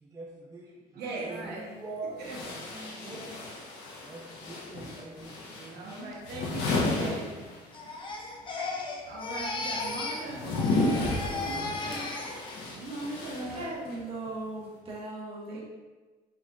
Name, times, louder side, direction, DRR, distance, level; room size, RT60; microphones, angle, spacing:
voice 1, 0.0-3.4 4.0-5.4, right 2 dB, 20° right, -3 dB, 0.6 m, -44 dB
voice 2, 0.9-1.7 2.2-2.5 2.9-3.2 5.6-7.3 9.0-12.1 12.7-13.7 15.5-15.6, right 2 dB, 70° right, -3 dB, 1.0 m, -40 dB
sound 1, 1.3-1.4 2.2-8.0 8.2-14.1, left 2 dB, 85° left, 1.1 m, -33 dB
Crying sobbing, 7.7-10.3 10.5-12.7 13.1-13.5, left 3 dB, 30° left, 0.7 m, -36 dB
voice 3, 13.5-15.6, right 2 dB, 35° right, -4 dB, 1.3 m, -38 dB
5.1 x 3.9 x 2.4 m, 1.2 s
cardioid pair, 110°, 17 cm